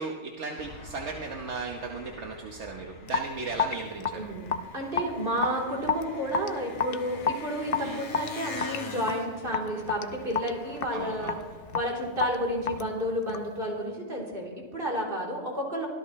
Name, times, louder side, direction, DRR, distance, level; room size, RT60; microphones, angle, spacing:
voice 1, 0.0-4.3 7.8-8.0 10.9-11.3, right 3 dB, 75° right, 2 dB, 1.5 m, -36 dB
Engine, 0.6-12.8, left 3 dB, 80° left, 1.7 m, -46 dB
Raindrop / Drip, 3.1-13.6, left 5 dB, 55° left, 0.9 m, -32 dB
voice 2, 4.1-4.5 4.7-11.4 11.7-15.9, equal, 50° right, -2 dB, 3.9 m, -31 dB
24.0 x 16.5 x 3.2 m, 1.5 s
omnidirectional pair, 1.2 m